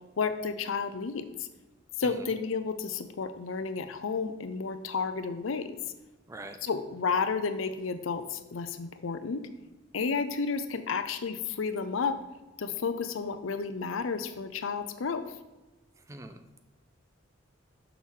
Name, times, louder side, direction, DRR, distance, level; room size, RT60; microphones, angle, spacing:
voice 1, 0.2-1.2 2.0-5.7 6.6-9.4 9.9-12.1 12.6-15.2, left 5 dB, 85° left, 10 dB, 0.6 m, -31 dB
voice 2, 16.1-16.6, right 2 dB, 15° right, 8 dB, 0.4 m, -44 dB
6.3 x 5.8 x 3.7 m, 1.1 s
head